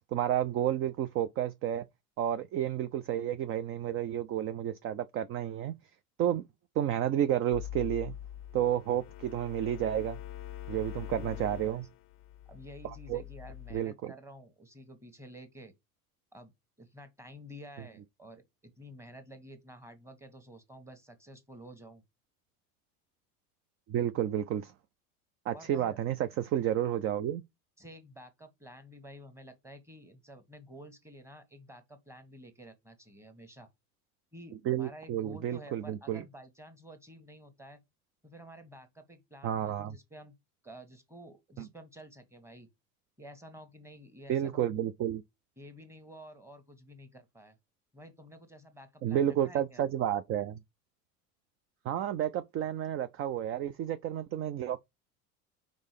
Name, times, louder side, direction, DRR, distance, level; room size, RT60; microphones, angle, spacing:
voice 1, 0.1-1.8 2.2-5.7 6.2-6.4 6.8-8.1 8.5-10.2 10.7-11.8 13.1-13.2 13.7-14.1 23.9-24.7 25.5-27.4 34.7-36.2 39.4-39.9 41.6-41.7 44.3-45.2 49.0-50.6 51.8-54.8, right 11 dB, 30° right, 0.5 m, -31 dB
sound 1, 7.5-13.8, left 12 dB, 30° left, 0.6 m, -43 dB
voice 2, 11.0-11.9 12.5-15.7 16.3-16.5 16.8-22.0 25.5-26.0 27.8-33.7 34.3-37.8 38.2-40.3 40.6-42.7 43.2-44.8 45.6-47.6 47.9-49.9, equal, 5° right, 1.4 m, -51 dB
5.3 x 3.9 x 4.9 m
hypercardioid pair, 80°, 45 cm